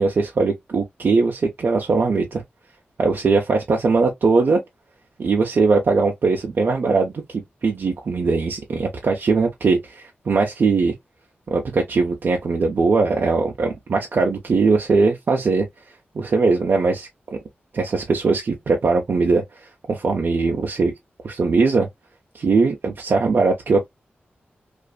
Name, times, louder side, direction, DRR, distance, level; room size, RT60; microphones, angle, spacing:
voice 1, 0.0-2.4 3.0-4.6 5.2-10.9 11.5-15.7 16.1-17.1 17.7-19.4 19.9-20.9 21.2-21.9 22.3-23.9, right 4 dB, 65° right, 0.5 m, -20 dB
2.5 x 2.4 x 2.2 m
wide cardioid pair, 85°, 4 cm